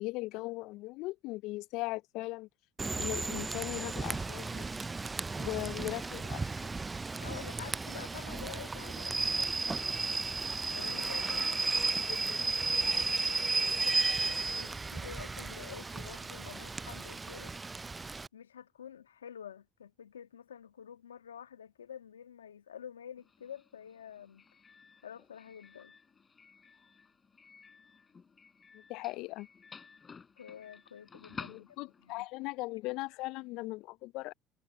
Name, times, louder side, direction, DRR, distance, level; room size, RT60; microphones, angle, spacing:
voice 1, 0.0-2.5 3.0-4.6 5.3-6.7 12.0-12.4 28.7-29.5 31.5-34.3, left 21 dB, 65° left, 0.5 m, -39 dB
Rain / Train, 2.8-18.3, right 3 dB, 20° right, 0.5 m, -34 dB
voice 2, 7.2-9.8 10.7-11.7 12.1-17.5 18.3-24.4 25.0-25.9 30.4-32.3, left 9 dB, 90° left, 1.7 m, -49 dB
Doorbell, 23.2-32.2, left 5 dB, 30° left, 4.6 m, -53 dB
hypercardioid pair, 65°, 0 cm